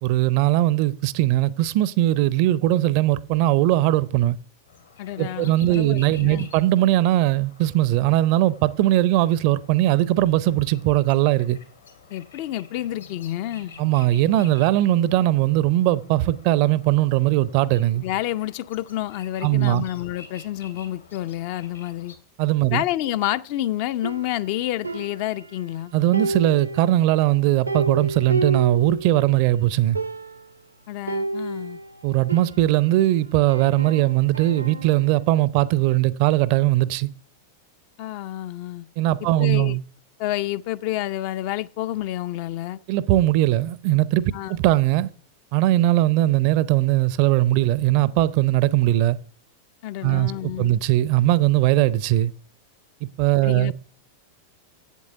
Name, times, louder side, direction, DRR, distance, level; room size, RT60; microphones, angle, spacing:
voice 1, 0.0-4.4 5.2-11.6 13.8-18.0 19.4-19.8 22.4-22.8 25.9-30.0 32.0-37.1 39.0-39.8 42.9-45.1 45.5-49.2 50.0-52.3 53.0-53.7, right 15 dB, 45° right, 0.5 m, -20 dB
sound 1, 4.7-22.2, left 6 dB, 70° left, 2.3 m, -48 dB
voice 2, 5.0-6.5 12.1-13.7 18.0-22.1 22.7-25.9 30.9-31.8 38.0-38.9 39.4-39.8 40.2-42.8 44.3-44.5 49.8-50.7 53.4-53.7, left 14 dB, 45° left, 0.5 m, -29 dB
sound 2, 24.0-25.8 26.1-29.4 29.7-29.8 29.9-30.6 31.1-33.1 33.5-35.2, right 3 dB, 80° right, 0.7 m, -31 dB
8.5 x 8.3 x 6.8 m
figure-of-eight pair, 90°, 0 cm